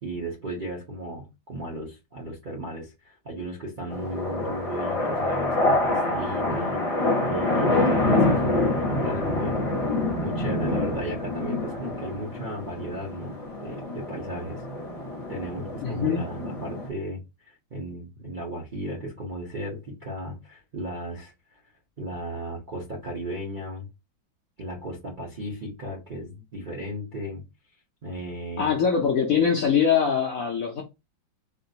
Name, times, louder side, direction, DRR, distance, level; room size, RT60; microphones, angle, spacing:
voice 1, 0.0-9.6 10.2-14.6 15.3-21.6 22.0-23.9 24.6-27.4 28.0-28.8, right 1 dB, 50° right, 0.5 m, -35 dB
sound 1, 3.9-16.9, left 2 dB, 30° left, 0.7 m, -26 dB
voice 2, 15.8-16.2 28.6-30.8, left 7 dB, 70° left, 0.8 m, -23 dB
3.7 x 2.4 x 2.7 m
omnidirectional pair, 2.0 m